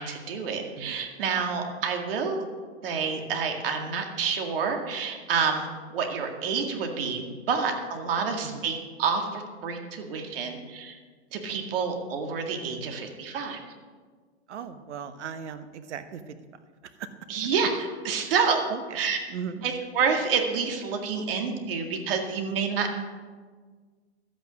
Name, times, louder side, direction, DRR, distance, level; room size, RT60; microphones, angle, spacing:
voice 1, 0.0-2.4 2.8-11.0 11.3-13.6 17.3-18.6 18.9-19.2 19.6-23.1, right 5 dB, 55° right, 4 dB, 2.1 m, -28 dB
voice 2, 14.5-16.4 17.0-17.1 18.3-19.0 19.3-19.6, right 7 dB, 85° right, 10 dB, 1.2 m, -38 dB
12.5 x 8.9 x 6.3 m, 1.5 s
hypercardioid pair, 165°, 34 cm